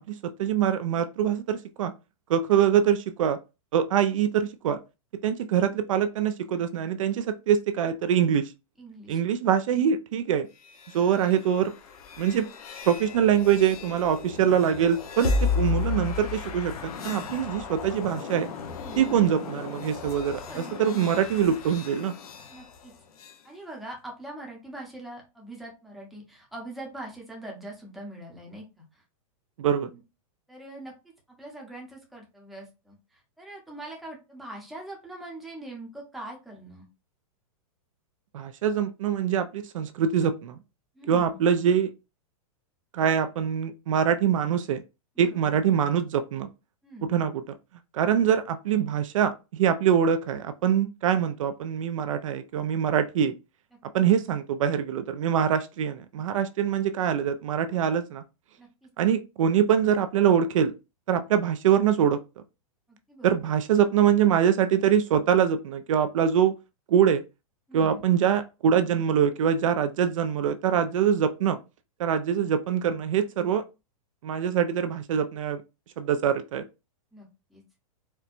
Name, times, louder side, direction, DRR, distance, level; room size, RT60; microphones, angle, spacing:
voice 1, 0.0-1.9 2.3-3.4 3.7-4.8 5.2-8.5 9.1-10.5 10.9-11.7 12.2-12.5 12.9-18.5 19.0-22.2 29.6-29.9 38.3-40.6 41.1-41.9 42.9-44.8 45.2-46.5 47.0-47.4 47.9-53.4 53.9-58.2 59.0-60.7 61.1-62.2 63.2-66.5 66.9-67.2 67.7-71.6 72.0-73.6 74.2-75.6 76.0-76.6, right 8 dB, 60° right, 0.4 m, -24 dB
voice 2, 8.8-9.2 18.8-19.2 20.4-20.8 22.5-22.9 23.4-29.0 29.9-30.0 30.5-30.9 31.4-36.8 40.9-41.4 45.2-45.6 46.8-47.1 58.6-58.9 62.9-63.5 67.7-68.0 77.1-77.6, right 1 dB, ahead, 0.7 m, -43 dB
sound 1, 10.6-23.4, left 5 dB, 85° left, 0.9 m, -34 dB
4.3 x 2.1 x 2.5 m
supercardioid pair, 165°, 18 cm